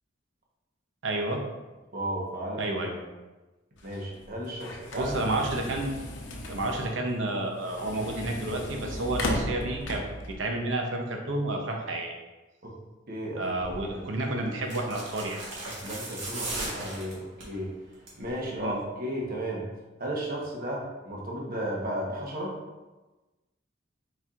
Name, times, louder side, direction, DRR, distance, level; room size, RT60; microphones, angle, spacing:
voice 1, 1.0-1.4 2.6-3.0 5.0-5.9 6.5-10.1 10.4-12.1 13.4-15.4 18.6-18.8, right 2 dB, 90° right, 1 dB, 0.7 m, -30 dB
voice 2, 1.9-2.7 3.8-5.2 12.6-12.8 13.1-14.1 15.6-17.8 18.2-19.7 20.0-22.6, right 1 dB, 50° right, -2 dB, 1.0 m, -34 dB
sound 1, 3.8-10.3, left 1 dB, 75° left, 0.7 m, -36 dB
sound 2, 13.6-13.8 14.6-17.5 17.9-18.3 18.5-18.6, right 2 dB, 75° right, 1.4 m, -37 dB
4.3 x 4.1 x 2.4 m, 1.1 s
head